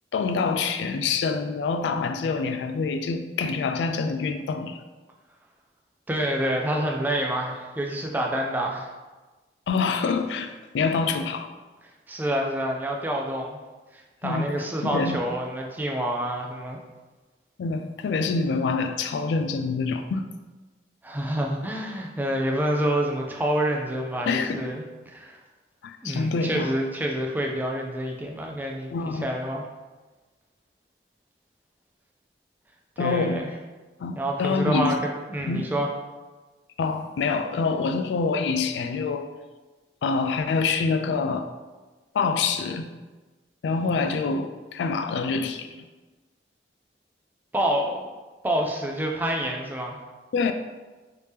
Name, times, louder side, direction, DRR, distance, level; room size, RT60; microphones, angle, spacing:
voice 1, 0.1-4.8 9.7-11.5 14.2-14.5 14.8-15.2 17.6-20.3 24.3-24.6 25.8-26.7 28.9-29.3 33.0-33.4 34.0-35.0 35.5-35.7 36.8-39.3 40.0-41.5 42.1-42.9 43.6-45.8 50.3-50.5, left 4 dB, 85° left, 8 dB, 0.3 m, -26 dB
voice 2, 6.1-8.9 12.1-13.6 13.9-16.8 21.0-25.4 26.0-29.7 33.0-33.5 34.2-35.9 47.5-48.1 48.4-50.0, right 1 dB, 10° right, 0 dB, 0.3 m, -27 dB
3.2 x 2.8 x 3.4 m, 1.2 s
head